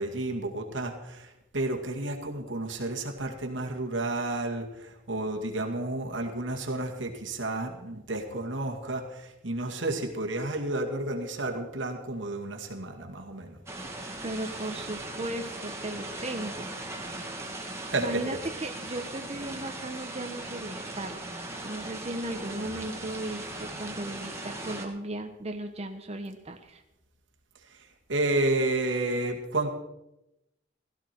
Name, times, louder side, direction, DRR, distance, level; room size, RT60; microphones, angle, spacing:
voice 1, 0.0-13.6 17.8-18.2 22.5-23.0 28.1-29.7, right 2 dB, 90° right, 3 dB, 2.2 m, -31 dB
sound 1, 13.7-24.9, right 2 dB, 15° right, 2.0 m, -39 dB
voice 2, 14.2-16.7 18.0-26.8, right 1 dB, 35° right, 4 dB, 1.0 m, -36 dB
16.5 x 14.0 x 4.5 m, 0.90 s
head